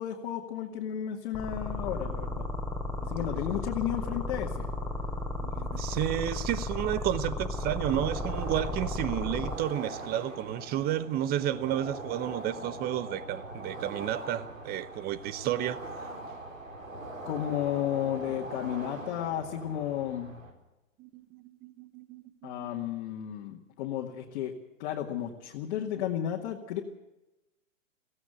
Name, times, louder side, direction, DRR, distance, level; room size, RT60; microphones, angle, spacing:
voice 1, 0.0-2.5 3.1-4.7 17.2-20.4 22.4-24.5 24.8-26.8, left 11 dB, 45° left, 2.2 m, -33 dB
sound 1, 1.3-9.5, left 2 dB, 5° left, 3.1 m, -34 dB
voice 2, 5.4-15.8 21.0-22.9, right 12 dB, 25° right, 1.0 m, -32 dB
sound 2, 7.5-20.5, right 2 dB, 90° right, 4.5 m, -42 dB
17.5 x 16.5 x 9.2 m
hypercardioid pair, 120°, 39 cm